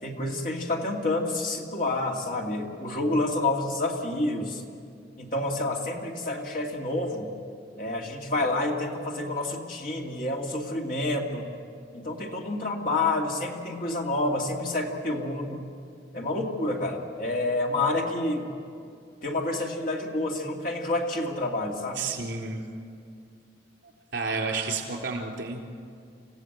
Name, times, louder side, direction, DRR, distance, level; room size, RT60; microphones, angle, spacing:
voice 1, 0.0-4.6 5.2-7.3 7.8-11.4 11.9-15.7 16.1-18.5 19.2-22.1, left 2 dB, 50° left, 0 dB, 2.4 m, -28 dB
voice 2, 22.0-22.6 23.8-25.6, right 4 dB, 75° right, 1 dB, 3.7 m, -31 dB
27.5 x 16.0 x 7.9 m, 2.3 s
head